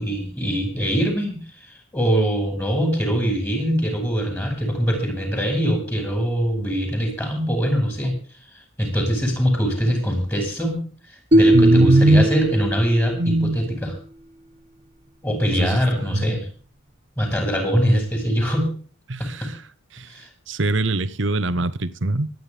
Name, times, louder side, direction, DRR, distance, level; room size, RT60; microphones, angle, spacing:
voice 1, 0.0-1.4 1.9-8.1 8.8-10.8 11.3-13.9 15.2-16.5 17.2-18.7 19.2-19.5 20.1-20.3, equal, 10° left, 5.6 m, -22 dB
sound 1, 11.3-13.5, right 1 dB, 40° right, 1.3 m, -19 dB
voice 2, 11.5-12.2 13.2-13.6 15.5-16.4 19.1-19.6 19.9-20.1 20.5-22.3, right 2 dB, 70° right, 1.1 m, -20 dB
24.5 x 9.6 x 3.5 m
head